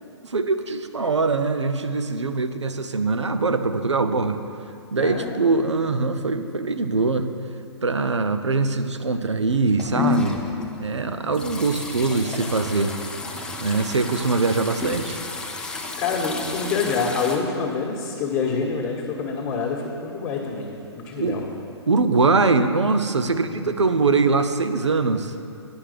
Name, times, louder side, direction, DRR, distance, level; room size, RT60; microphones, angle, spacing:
voice 1, 0.2-4.4 4.9-7.3 7.8-10.4 10.8-13.0 13.6-15.2 21.2-21.4 21.9-25.3, right 3 dB, 80° right, 9 dB, 0.7 m, -22 dB
voice 2, 5.0-5.5 16.0-21.4 23.2-23.7, left 5 dB, 25° left, -3 dB, 1.4 m, -27 dB
sound 1, 9.5-17.4, left 3 dB, 5° left, 0.7 m, -31 dB
9.8 x 5.8 x 6.6 m, 2.6 s
figure-of-eight pair, 125°, 15 cm